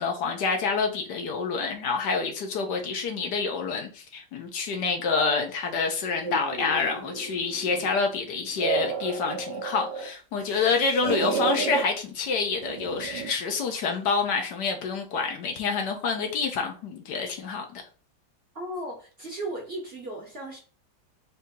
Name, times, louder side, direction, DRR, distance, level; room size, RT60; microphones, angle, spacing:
voice 1, 0.0-17.8, left 5 dB, 70° left, 1.3 m, -27 dB
sound 1, 6.2-8.0 8.4-10.1 10.4-11.8 12.6-13.4, right 6 dB, 70° right, 1.4 m, -32 dB
voice 2, 18.5-20.6, right 1 dB, 40° right, 0.9 m, -36 dB
4.1 x 2.7 x 3.7 m
omnidirectional pair, 2.0 m